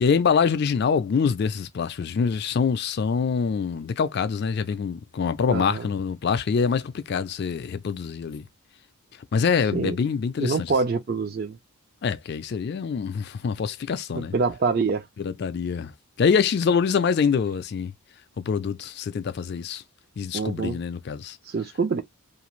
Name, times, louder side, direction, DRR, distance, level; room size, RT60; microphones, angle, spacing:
voice 1, 0.0-8.4 9.3-10.7 12.0-14.3 15.2-15.9 16.2-17.9 18.5-19.8 20.2-21.4, left 6 dB, 50° left, 0.3 m, -25 dB
voice 2, 5.5-5.8 9.7-9.9 10.4-11.6 14.1-15.0 20.3-20.8 21.5-22.0, right 4 dB, 45° right, 0.4 m, -25 dB
2.5 x 2.5 x 3.0 m
head